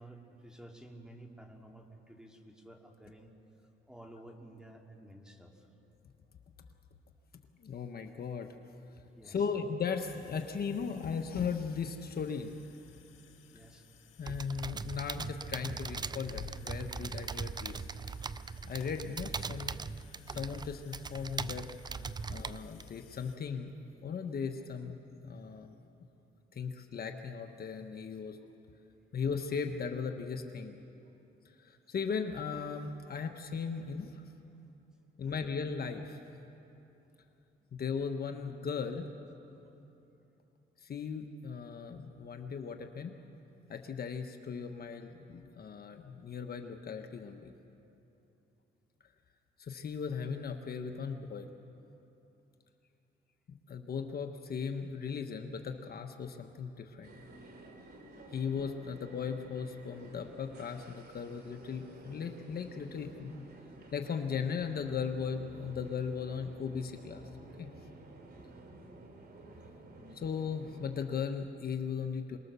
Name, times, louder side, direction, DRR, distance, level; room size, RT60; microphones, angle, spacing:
voice 1, 0.0-3.3 3.9-5.7 9.1-9.6 13.5-13.9 35.2-35.4 39.6-39.7, right 1 dB, 5° right, 2 dB, 2.7 m, -53 dB
voice 2, 7.6-8.5 9.2-12.5 14.2-17.9 18.6-19.7 20.3-21.7 22.3-23.7 24.0-25.7 26.5-28.4 29.1-30.8 31.4-34.2 35.2-36.2 37.7-39.1 40.8-43.2 43.7-47.5 49.6-51.5 53.5-57.2 58.3-63.4 63.9-67.2 67.6-67.9 70.1-72.4, left 6 dB, 50° left, 5 dB, 1.3 m, -37 dB
sound 1, 10.0-23.4, left 8 dB, 75° left, 1.8 m, -55 dB
sound 2, 14.2-22.9, right 5 dB, 20° right, 0.4 m, -40 dB
sound 3, 57.0-71.1, right 2 dB, 55° right, 2.9 m, -53 dB
26.5 x 20.0 x 6.9 m, 2.9 s
cardioid pair, 90°, 20 cm